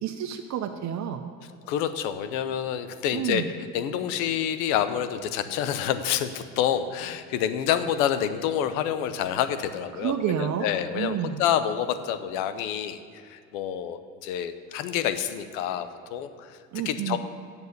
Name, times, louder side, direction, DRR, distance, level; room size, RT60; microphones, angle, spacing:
voice 1, 0.0-1.3 3.1-3.5 9.9-10.7 10.9-11.4 16.7-17.2, right 9 dB, 45° right, 6 dB, 0.7 m, -29 dB
voice 2, 1.6-3.4 3.7-10.1 10.4-13.0 13.3-16.6 16.8-17.2, left 9 dB, 75° left, 11 dB, 0.9 m, -28 dB
8.2 x 6.9 x 8.1 m, 2.3 s
supercardioid pair, 95°, 40 cm